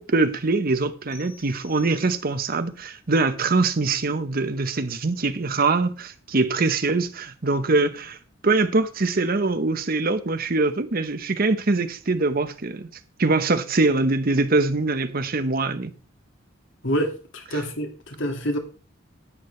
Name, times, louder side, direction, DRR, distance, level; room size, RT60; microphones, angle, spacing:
voice 1, 0.0-8.2 8.4-12.9 13.2-15.9, right 3 dB, 50° right, 0.9 m, -23 dB
sound 1, 1.1-2.6, left 4 dB, 45° left, 6.2 m, -50 dB
voice 2, 16.8-18.6, equal, 70° left, 2.0 m, -27 dB
11.0 x 8.9 x 3.2 m
head